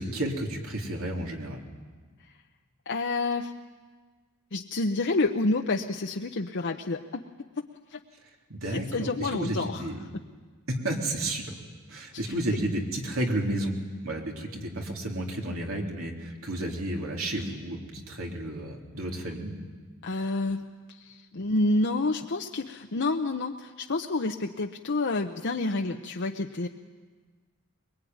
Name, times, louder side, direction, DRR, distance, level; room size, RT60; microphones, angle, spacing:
voice 1, 0.0-1.6 8.5-10.0 10.7-11.5 11.9-13.7 14.0-19.5, right 1 dB, 70° right, 0 dB, 3.6 m, -32 dB
voice 2, 2.9-3.5 4.5-7.2 7.9-8.0 8.9-9.8 20.0-20.7 21.0-26.7, left 2 dB, 55° left, 3 dB, 0.8 m, -28 dB
23.0 x 22.5 x 9.4 m, 1.5 s
head